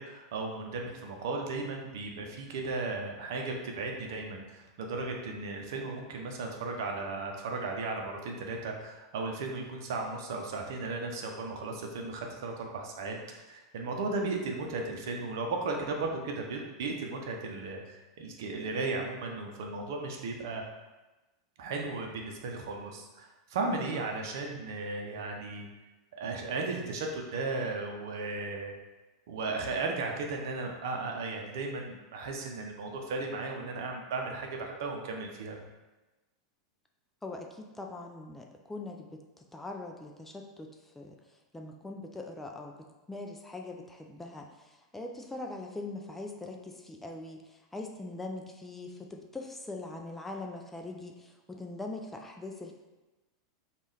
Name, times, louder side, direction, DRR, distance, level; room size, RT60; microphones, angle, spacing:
voice 1, 0.0-20.6 21.6-25.7 26.2-28.7 29.3-35.6, right 3 dB, 60° right, 2 dB, 0.7 m, -35 dB
voice 2, 37.2-41.2 41.5-52.7, left 2 dB, 10° left, 2 dB, 0.4 m, -42 dB
5.3 x 2.4 x 3.2 m, 1.1 s
figure-of-eight pair, 90°, 2 cm